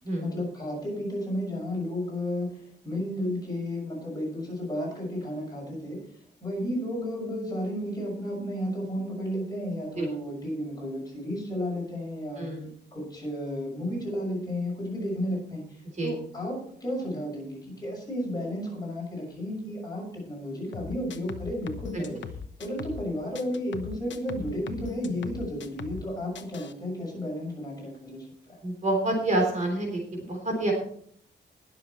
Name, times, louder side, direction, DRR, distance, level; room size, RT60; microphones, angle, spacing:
voice 1, 0.2-2.5 2.8-6.0 6.4-12.5 12.9-22.2 22.6-28.6, equal, 20° left, -3 dB, 6.2 m, -33 dB
voice 2, 12.4-12.7 16.0-16.1 28.6-30.7, right 1 dB, 40° right, 1 dB, 3.5 m, -28 dB
sound 1, 20.7-23.1 23.3-26.1 26.3-26.7, left 6 dB, 80° left, 1.0 m, -40 dB
20.0 x 7.0 x 4.3 m, 0.63 s
wide cardioid pair, 175°, 19 cm